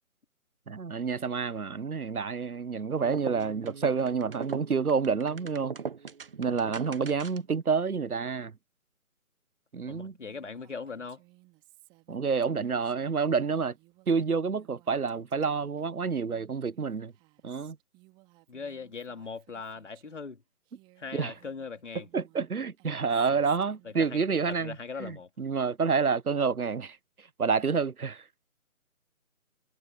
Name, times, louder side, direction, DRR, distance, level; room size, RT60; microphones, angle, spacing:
voice 1, 0.7-5.8 6.4-8.5 9.7-10.1 12.1-13.8 14.1-17.1 17.4-17.8 21.1-21.3 22.1-27.0 27.4-28.2, right 5 dB, 85° right, 0.8 m, -28 dB
sound 1, 3.0-7.6, right 5 dB, 40° right, 1.5 m, -40 dB
voice 2, 6.5-6.8 9.9-11.2 18.5-20.4 21.0-22.1 23.8-24.2 24.5-25.3, left 5 dB, 55° left, 2.8 m, -40 dB
Female speech woman speaking, 10.2-20.3 20.6-24.5, right 24 dB, 10° right, 2.9 m, -61 dB
figure-of-eight pair, 150°, 43 cm